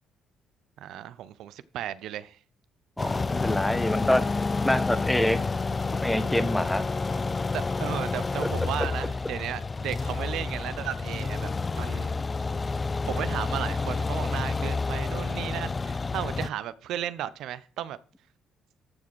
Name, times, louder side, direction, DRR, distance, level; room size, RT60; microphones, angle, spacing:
voice 1, 0.8-2.4 7.5-12.1 13.1-18.0, right 11 dB, 75° right, 0.6 m, -35 dB
sound 1, 3.0-16.5, left 3 dB, 30° left, 0.4 m, -29 dB
voice 2, 3.0-4.2 4.6-5.4 6.0-6.9, left 1 dB, 5° left, 1.2 m, -25 dB
14.0 x 5.0 x 6.2 m
cardioid pair, 80°, 0 cm